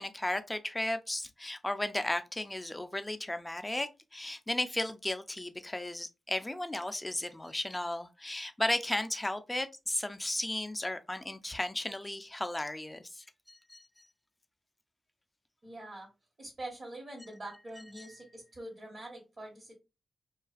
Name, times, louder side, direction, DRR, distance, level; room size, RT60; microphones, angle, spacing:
voice 1, 0.0-14.0, left 1 dB, 15° left, 0.4 m, -35 dB
voice 2, 15.6-16.1 16.4-19.7, right 1 dB, 50° right, 1.1 m, -44 dB
2.4 x 2.3 x 2.3 m
cardioid pair, 55°, 0 cm